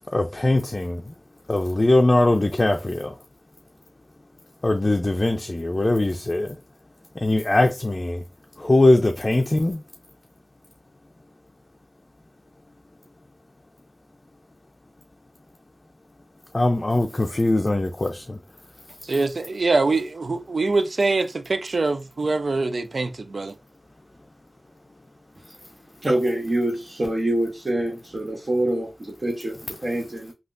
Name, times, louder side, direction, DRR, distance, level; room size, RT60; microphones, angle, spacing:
voice 1, 0.1-1.1 1.5-3.2 4.6-6.6 7.2-8.2 8.6-9.8 16.5-18.4, left 2 dB, 40° left, 0.4 m, -21 dB
voice 2, 19.0-23.5, right 3 dB, 80° right, 0.4 m, -24 dB
voice 3, 26.0-30.3, right 1 dB, 55° right, 0.9 m, -25 dB
3.4 x 2.3 x 2.5 m
wide cardioid pair, 50°, 0 cm